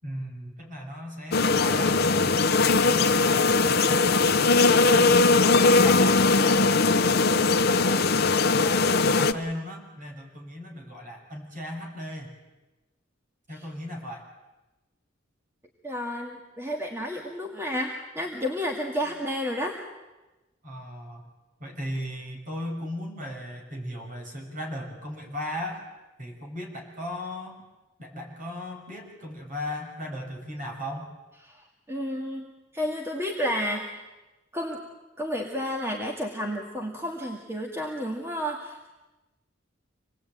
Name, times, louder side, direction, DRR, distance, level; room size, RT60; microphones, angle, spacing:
voice 1, 0.0-2.6 2.9-4.5 4.9-6.8 7.1-8.2 8.4-8.8 9.1-12.3 13.5-14.2 20.6-21.2 21.6-25.8 26.2-27.6 28.0-31.1, left 1 dB, 45° right, 2 dB, 6.5 m, -37 dB
sound 1, 1.3-9.3, left 3 dB, 55° left, 1.0 m, -20 dB
voice 2, 15.8-19.8 31.4-32.5 32.7-34.1 34.5-34.8 35.2-38.9, equal, 15° right, 0 dB, 2.2 m, -31 dB
26.5 x 20.0 x 9.0 m, 1.1 s
head